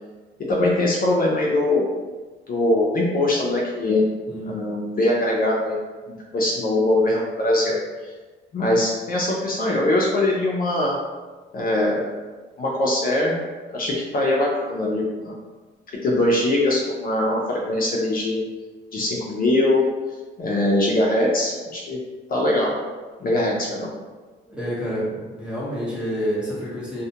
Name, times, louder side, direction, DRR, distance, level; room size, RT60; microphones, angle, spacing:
voice 1, 0.5-1.8 2.5-4.0 4.5-5.8 6.1-7.8 8.0-8.1 8.5-10.9 11.5-12.1 12.6-13.3 13.7-15.3 16.0-18.4 18.9-19.8 20.4-22.0 22.3-22.7 23.2-23.9, left 1 dB, 45° left, -3 dB, 0.5 m, -22 dB
voice 2, 4.3-4.6 24.5-27.0, equal, 5° right, -8 dB, 1.0 m, -28 dB
2.4 x 2.1 x 2.7 m, 1.3 s
cardioid pair, 90°, 20 cm